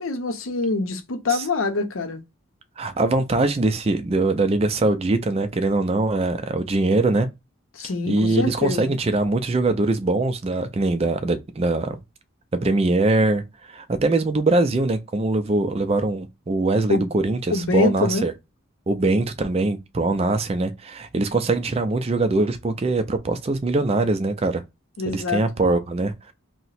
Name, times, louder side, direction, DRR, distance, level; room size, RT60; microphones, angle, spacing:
voice 1, 0.0-2.2 7.7-8.9 16.9-17.1 17.5-18.3 25.0-25.4, left 3 dB, 75° left, 0.7 m, -25 dB
voice 2, 2.8-7.3 8.1-12.0 12.6-18.3 18.9-24.6 25.1-26.3, right 2 dB, 30° right, 0.4 m, -22 dB
2.8 x 2.1 x 4.1 m
head